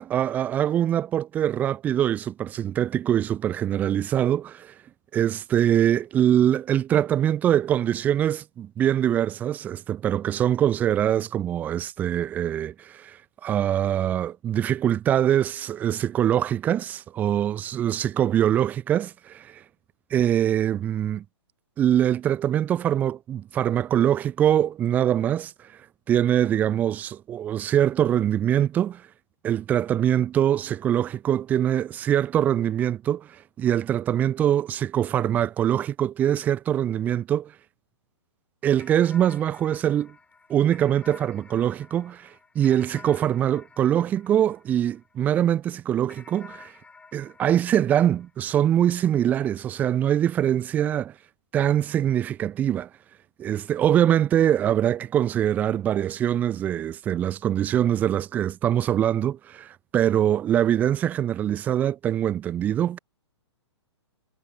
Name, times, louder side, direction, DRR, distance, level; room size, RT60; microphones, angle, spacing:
voice 1, 0.0-4.7 5.1-19.6 20.1-21.2 21.8-25.5 26.1-29.0 29.4-37.5 38.6-40.1 40.5-46.7 47.1-51.1 51.5-52.9 53.4-63.0, right 10 dB, 10° right, 0.3 m, -23 dB
sound 1, 38.8-45.4 46.1-48.8, left 4 dB, 10° left, 7.0 m, -51 dB
figure-of-eight pair, 120°, 15 cm